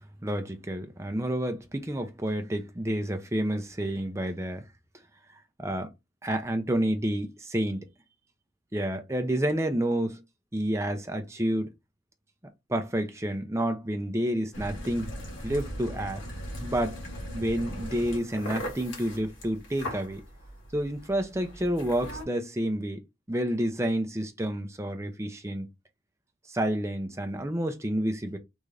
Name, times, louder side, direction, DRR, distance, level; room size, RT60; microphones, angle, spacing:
voice 1, 0.2-4.6 5.6-5.9 6.2-7.9 8.7-10.2 10.5-11.7 12.7-15.1 15.4-16.2 16.6-17.0 17.3-20.2 20.7-23.0 23.3-25.7 26.5-28.4, right 1 dB, 15° right, 0.6 m, -29 dB
sound 1, 14.5-22.2, equal, 85° left, 1.8 m, -39 dB
3.6 x 2.6 x 3.3 m
head